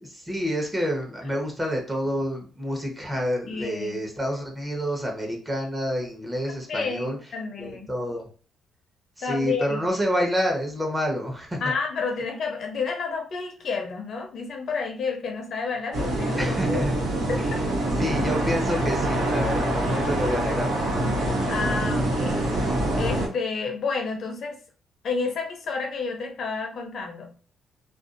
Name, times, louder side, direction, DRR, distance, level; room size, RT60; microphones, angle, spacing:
voice 1, 0.0-7.2 7.6-8.3 9.2-11.6 16.4-16.9 17.4-17.5 18.0-20.7, equal, 15° right, 0 dB, 0.9 m, -28 dB
voice 2, 3.5-4.0 6.7-7.9 9.2-9.8 11.6-16.9 17.3-17.6 20.0-20.1 21.5-22.4 23.0-24.6 25.0-27.3, left 4 dB, 60° left, 3 dB, 0.6 m, -30 dB
sound 1, 15.9-23.3, right 1 dB, 85° right, 1.0 m, -25 dB
2.5 x 2.4 x 2.5 m, 0.39 s
cardioid pair, 90°, 0 cm